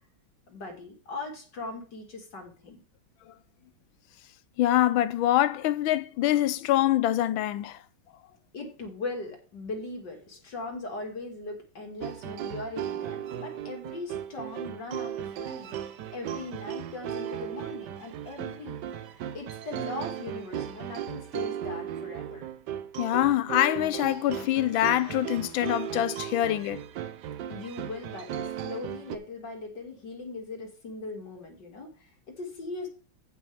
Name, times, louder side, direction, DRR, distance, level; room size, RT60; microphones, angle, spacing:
voice 1, 0.5-2.8 8.5-15.8 16.1-22.5 27.5-32.9, left 3 dB, 60° left, 2.8 m, -39 dB
voice 2, 4.6-7.8 23.0-26.8, left 13 dB, 85° left, 1.4 m, -25 dB
sound 1, 12.0-29.2, right 10 dB, 65° right, 1.2 m, -36 dB
15.5 x 5.8 x 3.4 m
omnidirectional pair, 2.2 m